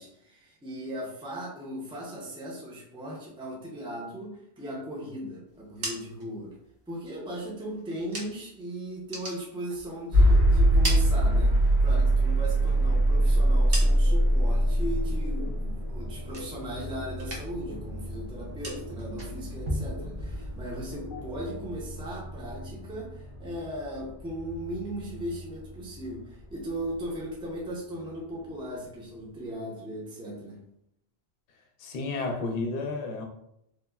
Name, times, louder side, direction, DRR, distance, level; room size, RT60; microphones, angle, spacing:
voice 1, 0.0-6.5 6.9-30.6, equal, 5° right, -4 dB, 0.5 m, -38 dB
sound 1, 5.5-8.6 8.9-10.2 10.5-11.9 12.2-14.4 14.7-15.2 15.5-16.9 17.1-17.7 18.0-20.8, right 1 dB, 45° right, 0.7 m, -39 dB
sound 2, 10.1-26.1, right 1 dB, 80° right, 1.6 m, -25 dB
sound 3, 12.7-21.6, left 1 dB, 35° left, 0.6 m, -46 dB
voice 2, 31.8-33.3, left 3 dB, 65° left, 2 dB, 0.7 m, -31 dB
3.3 x 2.0 x 2.3 m, 0.77 s
omnidirectional pair, 1.1 m